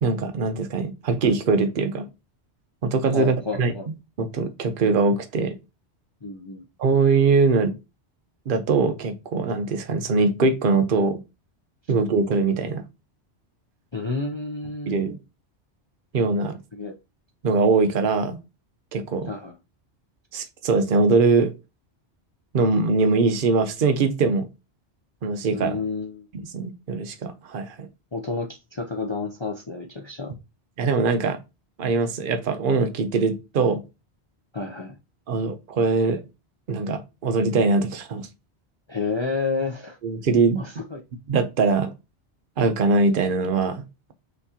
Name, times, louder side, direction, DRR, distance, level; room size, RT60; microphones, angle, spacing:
voice 1, 0.0-2.1 2.8-3.7 4.2-5.6 6.8-7.7 8.5-11.2 11.9-12.8 14.9-15.2 16.1-16.6 17.4-18.4 18.9-19.3 20.3-21.5 22.5-24.5 25.2-25.8 26.3-27.9 30.8-31.4 31.8-33.8 35.3-36.2 36.7-38.3 40.0-40.6 41.3-41.9 42.6-43.8, right 4 dB, 55° right, 0.8 m, -22 dB
voice 2, 3.1-3.9 6.2-6.6 13.9-15.0 16.7-16.9 19.3-19.6 25.5-26.3 28.1-30.3 34.5-35.0 38.9-40.0 40.5-41.0, left 4 dB, 35° left, 0.4 m, -30 dB
5.8 x 3.0 x 2.8 m
omnidirectional pair, 1.2 m